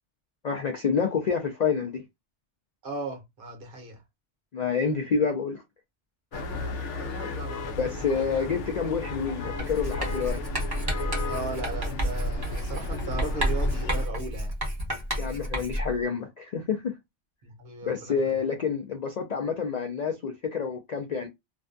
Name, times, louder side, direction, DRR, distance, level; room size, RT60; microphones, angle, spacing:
voice 1, 0.4-2.0 4.5-5.6 7.8-10.4 15.2-16.9 17.9-21.3, left 6 dB, 65° left, 0.4 m, -28 dB
voice 2, 2.8-4.0 6.3-8.1 11.3-14.5 17.4-18.4, right 3 dB, 50° right, 0.9 m, -37 dB
sound 1, 6.3-14.1, left 2 dB, 85° left, 0.9 m, -34 dB
Writing, 9.6-16.0, equal, 25° right, 0.7 m, -30 dB
2.5 x 2.2 x 2.5 m
omnidirectional pair, 1.2 m